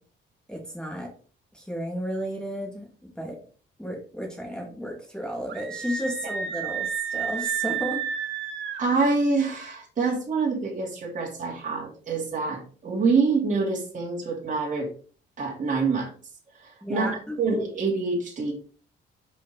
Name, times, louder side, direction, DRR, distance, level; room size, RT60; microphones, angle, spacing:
voice 1, 0.5-1.1 1.5-2.9 3.1-3.4 3.8-8.0 16.8-17.4, equal, 5° left, 0 dB, 2.5 m, -33 dB
Screaming, 5.5-8.8, right 8 dB, 70° right, 1.4 m, -31 dB
voice 2, 8.8-14.9 15.4-16.1 16.6-18.5, right 4 dB, 40° right, -2 dB, 2.6 m, -26 dB
5.4 x 5.1 x 4.8 m, 0.39 s
cardioid pair, 90°, 20 cm